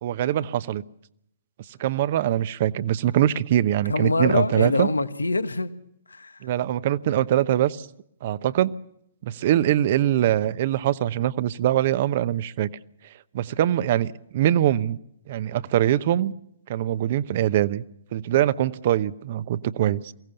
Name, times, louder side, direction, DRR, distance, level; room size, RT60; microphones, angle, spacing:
voice 1, 0.0-0.8 1.8-4.9 6.4-7.9 8.2-8.7 9.2-12.7 13.3-15.0 15.3-16.3 16.7-17.8 18.1-20.1, right 12 dB, 50° right, 16 dB, 0.9 m, -23 dB
voice 2, 3.9-5.7 6.1-6.5, left 3 dB, 85° left, 12 dB, 1.2 m, -24 dB
23.0 x 17.0 x 6.9 m, 0.73 s
figure-of-eight pair, 120°, 0 cm